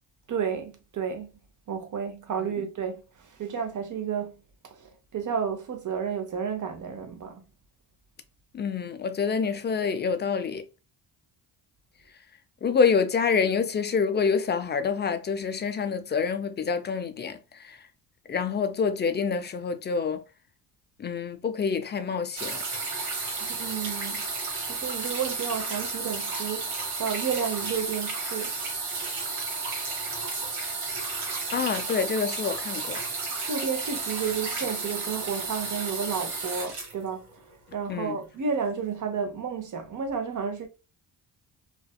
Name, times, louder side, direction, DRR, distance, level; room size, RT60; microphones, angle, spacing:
voice 1, 0.3-1.3 1.7-3.0 3.4-4.3 5.1-7.4 23.4-24.2 24.7-26.7 27.0-28.5 33.5-37.2 37.7-40.7, right 6 dB, 40° right, 0.8 m, -31 dB
voice 2, 8.5-10.6 12.6-17.8 18.3-20.2 21.0-22.6 31.5-33.0 37.9-38.2, left 5 dB, 25° left, 0.4 m, -27 dB
sound 1, 22.4-37.7 38.6-38.7, right 4 dB, 85° right, 1.0 m, -32 dB
2.5 x 2.2 x 2.2 m
supercardioid pair, 55°, 48 cm